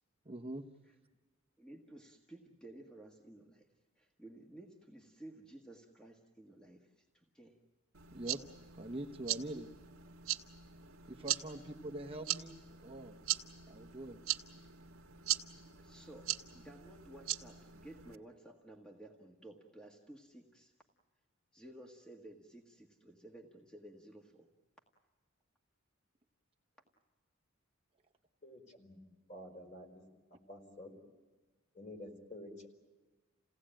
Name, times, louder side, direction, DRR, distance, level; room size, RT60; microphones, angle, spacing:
voice 1, 0.2-0.6 8.1-8.4 8.8-9.7 11.1-12.6 12.8-13.2 13.7-14.2, right 1 dB, 25° right, 1 dB, 1.1 m, -43 dB
voice 2, 1.6-3.7 4.0-7.6 15.8-16.3 16.5-20.7 21.5-24.5, right 1 dB, 5° left, 1 dB, 1.6 m, -54 dB
sound 1, 7.9-18.2, right 12 dB, 85° right, 1.6 m, -41 dB
voice 3, 28.4-29.0 29.3-30.0 30.5-30.9 31.7-32.7, left 1 dB, 35° left, 3 dB, 4.6 m, -50 dB
29.0 x 17.5 x 8.9 m, 1.3 s
head